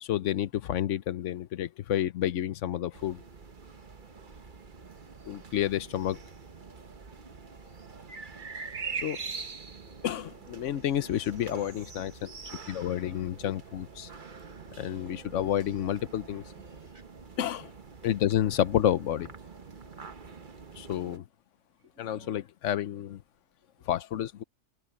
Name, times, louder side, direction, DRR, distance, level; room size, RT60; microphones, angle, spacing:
voice 1, 0.0-3.2 5.3-6.1 9.0-9.2 10.0-12.1 12.7-14.1 14.8-16.4 17.4-17.7 18.0-19.3 20.8-21.2 22.0-23.2 23.9-24.4, left 11 dB, 80° left, 1.0 m, -30 dB
sound 1, 2.9-21.2, right 5 dB, 45° right, 1.2 m, -44 dB
voice 2, 5.7-6.3 11.0-11.6 12.2-12.6 15.3-15.4 16.6-17.1 21.8-23.1 23.6-23.9 24.3-24.5, equal, 70° right, 6.6 m, -57 dB
omnidirectional pair, 1.3 m